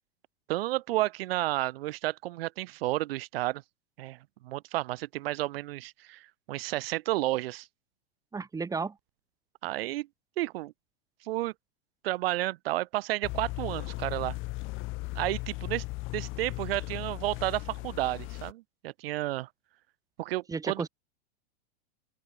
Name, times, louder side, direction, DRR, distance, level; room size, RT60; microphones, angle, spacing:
voice 1, 0.5-3.6 4.0-4.2 4.4-6.2 6.5-7.7 9.6-10.1 10.4-10.7 11.3-11.5 12.0-14.3 15.1-15.8 16.1-19.5 20.2-20.9, right 17 dB, 60° right, 4.6 m, -31 dB
voice 2, 8.3-8.9 20.5-20.9, right 4 dB, 10° right, 3.8 m, -33 dB
sound 1, 13.2-18.5, left 22 dB, 40° left, 3.5 m, -37 dB
open air
supercardioid pair, 140°, 32 cm